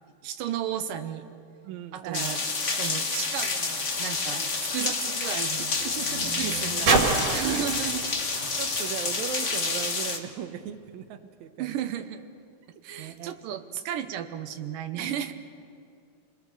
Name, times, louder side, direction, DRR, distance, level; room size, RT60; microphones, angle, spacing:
voice 1, 0.2-1.2 1.9-2.4 2.8-5.8 6.2-8.0 11.6-12.2 12.8-15.3, right 10 dB, 85° right, 8 dB, 2.6 m, -34 dB
voice 2, 1.6-2.4 2.9-3.1 4.3-4.5 5.8-6.3 7.5-7.7 8.6-11.8 13.0-13.4 15.0-15.3, right 9 dB, 65° right, 7 dB, 2.3 m, -38 dB
sound 1, 2.1-10.2, left 4 dB, 65° left, 0.7 m, -29 dB
sound 2, 3.3-9.8 10.7-10.8, right 3 dB, 50° right, 3.3 m, -31 dB
29.0 x 21.0 x 6.8 m, 2.4 s
omnidirectional pair, 3.8 m